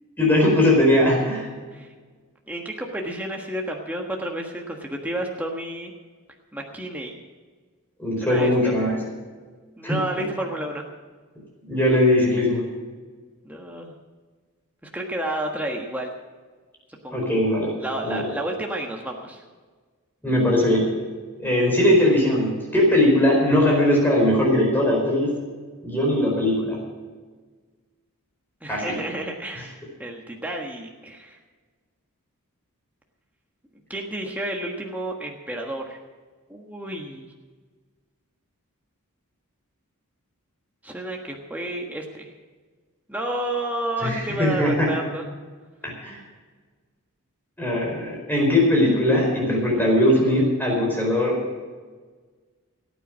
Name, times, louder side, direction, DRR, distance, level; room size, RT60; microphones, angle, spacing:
voice 1, 0.2-1.5 8.0-9.0 9.8-10.0 11.7-12.7 17.1-17.7 18.0-18.3 20.2-20.9 21.4-25.3 25.8-26.8 28.7-29.0 44.0-44.9 45.8-46.2 47.6-51.4, left 1 dB, 10° left, -2 dB, 4.6 m, -20 dB
voice 2, 2.5-5.9 6.5-7.2 8.2-8.7 9.8-10.8 13.4-13.9 14.9-16.1 17.0-17.2 17.8-19.4 28.6-31.4 33.9-36.0 36.5-37.3 40.8-42.3 43.1-45.2, right 1 dB, 5° right, 0 dB, 1.4 m, -31 dB
18.5 x 9.2 x 6.2 m, 1.4 s
head